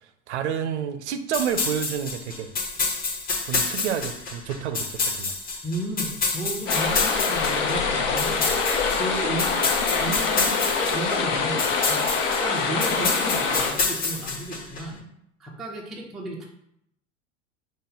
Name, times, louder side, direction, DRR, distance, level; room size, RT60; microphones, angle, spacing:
voice 1, 0.3-2.5 3.5-5.4, right 8 dB, 60° right, 9 dB, 0.5 m, -29 dB
sound 1, 1.3-14.8, left 4 dB, 20° left, 0.7 m, -28 dB
voice 2, 5.6-8.5 8.9-15.0 15.4-16.4, right 1 dB, ahead, -2 dB, 0.3 m, -34 dB
sound 2, 6.7-13.7, left 4 dB, 60° left, 0.8 m, -25 dB
5.1 x 2.1 x 3.6 m, 0.77 s
figure-of-eight pair, 80°, 40 cm